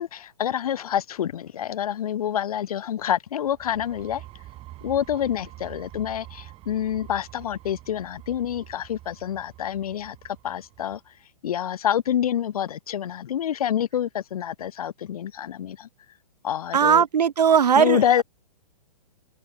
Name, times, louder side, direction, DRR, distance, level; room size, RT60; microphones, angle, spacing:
voice 1, 0.0-4.2 4.8-11.0 11.4-15.9 16.4-17.0 17.8-18.2, left 10 dB, 60° left, 1.5 m, -27 dB
sound 1, 3.5-11.1, right 16 dB, 25° right, 3.7 m, -46 dB
voice 2, 16.7-18.2, right 7 dB, 70° right, 0.9 m, -19 dB
figure-of-eight pair, 120°, 21 cm